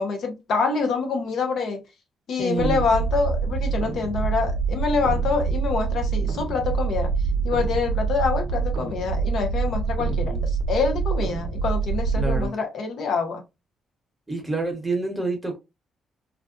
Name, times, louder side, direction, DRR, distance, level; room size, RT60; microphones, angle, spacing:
voice 1, 0.0-1.8 2.3-7.1 7.4-13.4, left 4 dB, 65° left, 0.6 m, -26 dB
voice 2, 2.4-2.8 10.1-10.4 12.1-12.6 14.3-15.6, right 2 dB, 10° right, 1.0 m, -28 dB
sound 1, 2.6-12.5, right 5 dB, 85° right, 0.4 m, -25 dB
2.4 x 2.2 x 2.4 m
cardioid pair, 90°, 0 cm